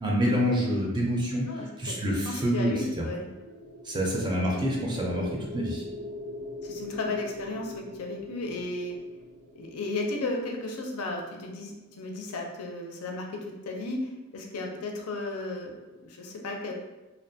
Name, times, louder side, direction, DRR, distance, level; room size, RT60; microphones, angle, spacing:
voice 1, 0.0-3.1 3.8-5.8, equal, 20° right, -3 dB, 0.4 m, -27 dB
voice 2, 1.5-3.3 6.6-9.0 9.5-16.7, left 2 dB, 85° left, 1 dB, 0.5 m, -34 dB
sound 1, 2.8-10.9, left 2 dB, 85° right, 0.7 m, -42 dB
2.5 x 2.2 x 2.6 m, 1.1 s
head